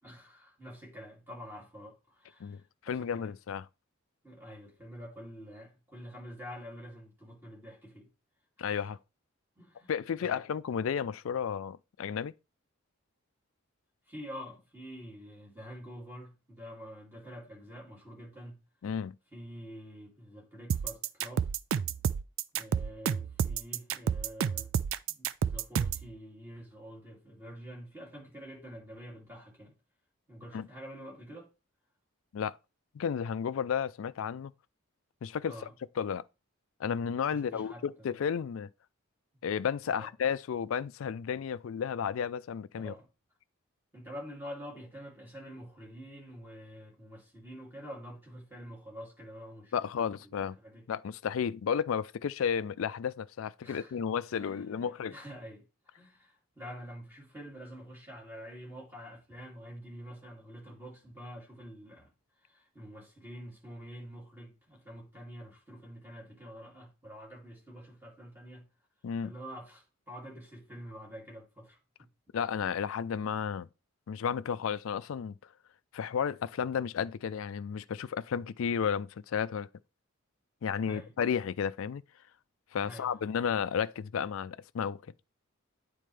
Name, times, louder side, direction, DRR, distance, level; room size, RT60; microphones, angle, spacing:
voice 1, 0.0-3.3 4.2-8.1 8.6-8.7 9.6-9.9 10.2-10.4 14.1-18.6 19.3-21.5 22.5-24.7 25.1-29.7 30.3-31.5 35.4-35.7 37.3-38.2 39.8-40.1 42.8-43.1 43.9-50.8 53.6-54.0 54.3-62.1 62.4-68.6 69.2-72.1 80.8-81.1 82.8-83.2, equal, 10° right, 2.6 m, -47 dB
voice 2, 2.4-3.7 8.6-9.0 9.9-12.3 18.8-19.2 30.5-30.7 32.3-32.6 32.9-34.5 35.2-35.6 36.0-36.2 36.8-38.7 39.4-42.9 49.7-50.6 50.9-55.1 69.0-69.3 72.3-73.7 74.1-75.4 75.9-79.7 80.6-82.0 82.7-85.0, left 7 dB, 75° left, 0.4 m, -32 dB
sound 1, 20.7-26.1, right 7 dB, 70° right, 0.3 m, -30 dB
9.2 x 4.2 x 3.3 m
head